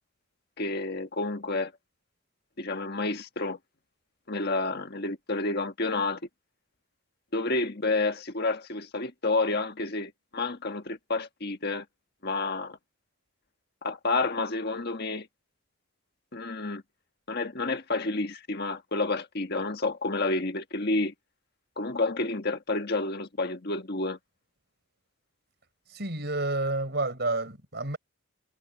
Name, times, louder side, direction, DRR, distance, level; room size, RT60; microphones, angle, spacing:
voice 1, 0.6-1.7 2.6-3.6 4.3-6.2 7.3-11.8 12.2-12.8 13.8-15.3 16.3-16.8 17.3-21.1 21.8-24.2, left 3 dB, 50° left, 1.6 m, -29 dB
voice 2, 25.9-28.0, right 2 dB, 50° right, 5.8 m, -30 dB
head